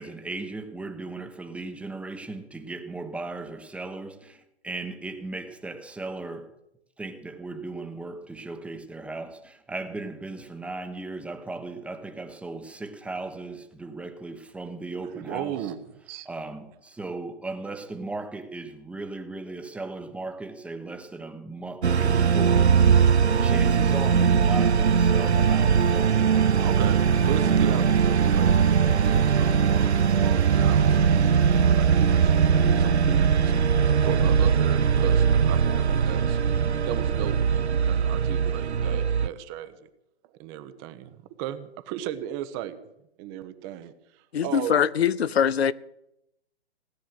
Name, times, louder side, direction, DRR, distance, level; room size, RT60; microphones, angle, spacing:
voice 1, 0.0-6.5 7.0-15.6 16.2-22.8 23.4-26.7, right 3 dB, 5° right, 1.2 m, -37 dB
voice 2, 15.1-16.3 26.6-31.2 31.7-33.5 34.0-36.4 36.9-39.9 40.4-42.8 43.2-44.8, right 11 dB, 25° right, 1.0 m, -36 dB
sound 1, 21.8-39.3, right 6 dB, 85° right, 0.8 m, -20 dB
voice 3, 44.3-45.7, left 8 dB, 70° left, 0.8 m, -22 dB
17.5 x 10.0 x 7.8 m
hypercardioid pair, 135°, 33 cm